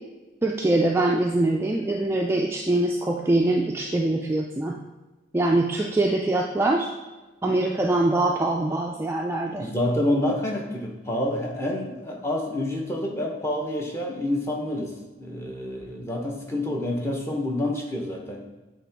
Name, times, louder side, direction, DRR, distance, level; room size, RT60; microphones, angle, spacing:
voice 1, 0.4-4.8 5.3-6.9 7.4-9.6, right 2 dB, 10° right, -1 dB, 0.3 m, -23 dB
voice 2, 9.6-18.4, left 1 dB, 15° left, 0 dB, 0.8 m, -28 dB
8.3 x 3.8 x 3.4 m, 1.2 s
head